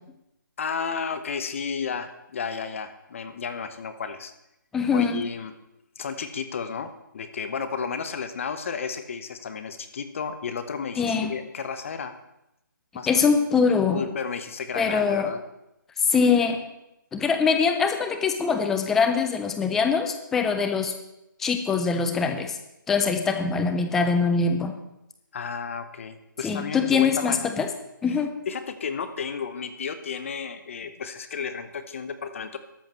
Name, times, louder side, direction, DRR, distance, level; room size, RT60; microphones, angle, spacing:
voice 1, 0.6-4.3 4.9-5.5 6.0-12.2 12.9-13.2 13.9-15.4 25.3-27.5 28.5-32.6, left 6 dB, 40° left, 11 dB, 1.0 m, -32 dB
voice 2, 4.7-5.2 11.0-11.3 13.1-14.0 14.8-15.3 16.1-16.6 17.1-20.9 21.4-22.6 22.9-24.7 26.4-27.7 28.0-28.3, left 5 dB, 5° left, 6 dB, 0.3 m, -23 dB
13.0 x 5.2 x 7.4 m, 0.88 s
hypercardioid pair, 165°, 11 cm